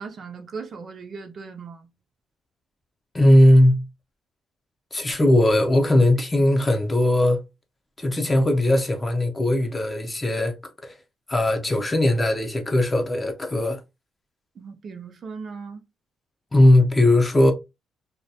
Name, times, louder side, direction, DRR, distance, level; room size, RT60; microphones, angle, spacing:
voice 1, 0.0-1.9 14.6-15.8, right 5 dB, 45° right, 0.5 m, -38 dB
voice 2, 3.1-3.9 4.9-7.4 8.0-10.5 10.8-10.9 11.3-13.8 16.5-17.5, left 1 dB, 20° left, 0.5 m, -18 dB
2.2 x 2.1 x 2.7 m
cardioid pair, 120°, 0 cm